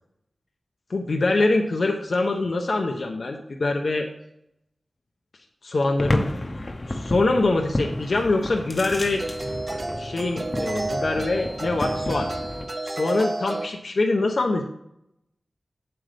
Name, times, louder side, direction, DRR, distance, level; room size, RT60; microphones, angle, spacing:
voice 1, 0.9-4.1 5.6-6.3 6.9-9.2 10.0-12.3 12.8-14.6, left 2 dB, 70° left, 3 dB, 0.7 m, -24 dB
sound 1, 6.0-12.7, left 1 dB, 50° left, 0.9 m, -31 dB
sound 2, 7.8-7.9 9.2-13.7, right 2 dB, 45° right, 0.7 m, -31 dB
7.7 x 7.7 x 3.4 m, 0.79 s
wide cardioid pair, 55°, 0 cm